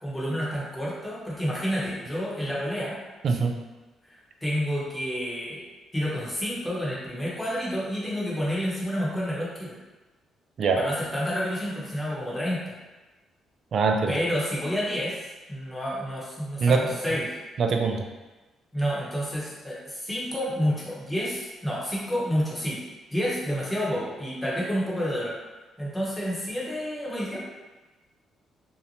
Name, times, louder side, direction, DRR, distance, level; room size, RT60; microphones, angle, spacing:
voice 1, 0.0-3.0 4.4-5.6 5.9-9.7 10.8-12.7 14.1-15.2 15.5-17.3 18.7-22.8 23.1-25.3 25.8-27.5, equal, 10° left, -6 dB, 0.8 m, -29 dB
voice 2, 13.7-14.1 16.6-16.8 17.6-18.0, right 4 dB, 55° right, 4 dB, 0.3 m, -22 dB
2.8 x 2.1 x 2.6 m, 1.2 s
cardioid pair, 90°, 0 cm